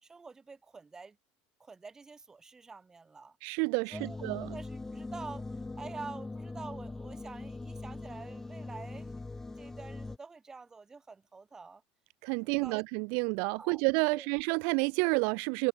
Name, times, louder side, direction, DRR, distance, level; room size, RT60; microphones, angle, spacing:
voice 1, 0.0-1.2 1.6-3.4 3.9-5.4 5.8-9.2 9.6-11.8 12.4-12.7 13.6-13.8 14.1-14.3, right 4 dB, 15° right, 4.3 m, -47 dB
voice 2, 3.4-4.6 12.2-15.7, right 40 dB or more, 70° right, 0.4 m, -30 dB
sound 1, 3.9-10.2, left 3 dB, 10° left, 5.0 m, -41 dB
supercardioid pair, 135°, 4 cm